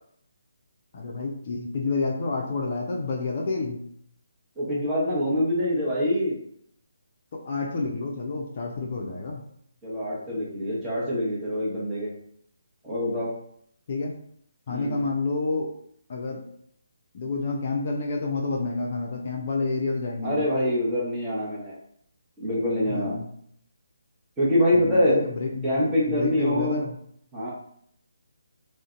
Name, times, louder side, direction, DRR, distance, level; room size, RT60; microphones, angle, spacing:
voice 1, 0.9-3.8 7.3-9.4 13.9-14.2 14.7-15.7 16.1-16.4 17.1-20.5 22.9-23.3 24.7-27.0, left 3 dB, 45° left, 0 dB, 0.4 m, -29 dB
voice 2, 4.6-6.4 9.8-12.1 12.8-13.3 14.7-15.0 20.2-21.7 22.4-23.2 24.4-25.3 25.6-26.8 27.3-27.5, left 1 dB, 10° right, -8 dB, 0.9 m, -25 dB
2.5 x 2.1 x 2.4 m, 0.68 s
figure-of-eight pair, 150°, 0 cm